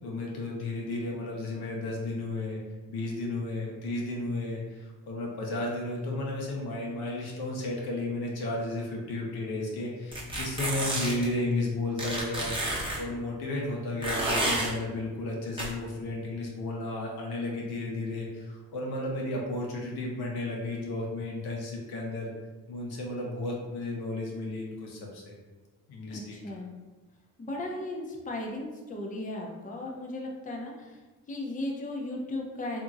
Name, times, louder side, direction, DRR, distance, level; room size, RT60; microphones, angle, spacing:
voice 1, 0.0-2.6 2.9-22.3 22.7-25.4 25.9-26.3, left 2 dB, 80° left, -2 dB, 0.8 m, -33 dB
sound 1, 10.1-11.3 12.0-13.0 14.0-14.7 15.6-15.7, right 1 dB, 15° right, 0.9 m, -30 dB
voice 2, 26.1-26.7 27.4-31.0 31.3-32.8, left 1 dB, 20° left, 0 dB, 0.6 m, -36 dB
2.8 x 2.6 x 2.4 m, 1.2 s
supercardioid pair, 60°, 38 cm